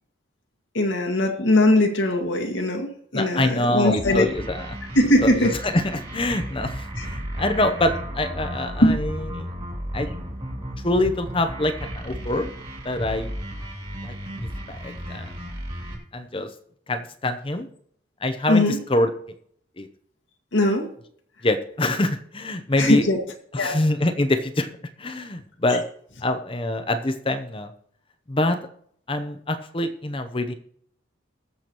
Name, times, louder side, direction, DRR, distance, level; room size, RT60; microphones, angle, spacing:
voice 1, 0.7-4.3 5.0-5.5 7.0-7.1 8.8-9.0 18.5-18.8 20.5-20.9 22.8-23.2 23.6-23.8, left 1 dB, 85° left, 2 dB, 1.9 m, -20 dB
voice 2, 3.1-4.8 5.2-9.5 9.9-10.1 10.8-12.5 12.8-13.3 14.0-14.1 14.7-15.3 16.1-16.5 16.9-17.7 18.2-19.1 19.8-19.9 21.4-23.0 23.5-24.7 25.0-25.8 26.2-27.7 28.3-28.6 29.1-30.5, left 1 dB, 30° left, 7 dB, 0.7 m, -25 dB
sound 1, 4.0-16.0, equal, 30° right, 2.8 m, -34 dB
21.0 x 7.0 x 3.0 m, 0.63 s
head